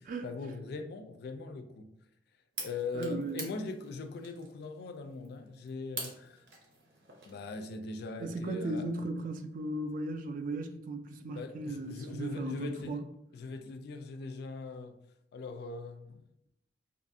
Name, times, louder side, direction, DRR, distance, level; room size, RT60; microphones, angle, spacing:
voice 1, 0.2-1.9 2.6-6.5 7.3-8.9 11.3-13.1 13.3-15.0 15.3-16.2, left 3 dB, 65° left, 0.3 m, -41 dB
sound 1, 2.5-7.7, right 3 dB, 75° right, 0.7 m, -46 dB
voice 2, 2.9-3.5 8.2-13.0, right 2 dB, 50° right, 0.3 m, -36 dB
2.6 x 2.4 x 2.6 m
head